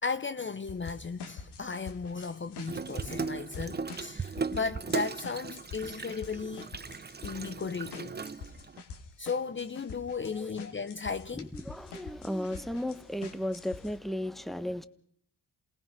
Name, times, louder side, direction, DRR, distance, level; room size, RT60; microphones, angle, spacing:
voice 1, 0.0-6.7 7.2-8.1 9.2-11.5, left 5 dB, 30° left, 1.0 m, -35 dB
sound 1, 0.7-13.9, left 5 dB, 85° left, 2.8 m, -47 dB
Water tap faucet / Sink (filling or washing), 2.7-8.8, right 5 dB, 25° right, 0.8 m, -37 dB
voice 2, 10.2-10.6 11.3-14.9, left 1 dB, ahead, 1.4 m, -35 dB
28.0 x 19.5 x 5.9 m
cardioid pair, 65°, 39 cm